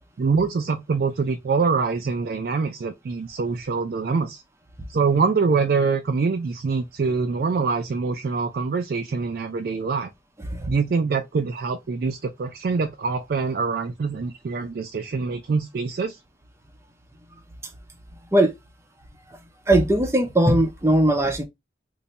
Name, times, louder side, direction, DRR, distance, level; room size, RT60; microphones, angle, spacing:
voice 1, 0.2-4.4 4.9-10.1 10.7-16.2, right 4 dB, 55° right, 0.3 m, -24 dB
voice 2, 19.7-21.4, right 1 dB, 15° right, 0.6 m, -19 dB
2.6 x 2.1 x 4.0 m
head